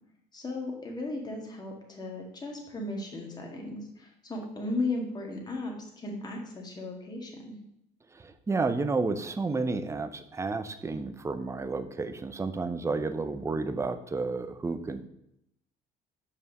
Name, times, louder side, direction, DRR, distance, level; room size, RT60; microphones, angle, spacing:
voice 1, 0.3-7.5, left 2 dB, 25° left, 0 dB, 1.9 m, -36 dB
voice 2, 8.1-15.0, right 3 dB, 15° right, 10 dB, 0.6 m, -31 dB
5.4 x 4.8 x 6.5 m, 0.77 s
cardioid pair, 110°, 17 cm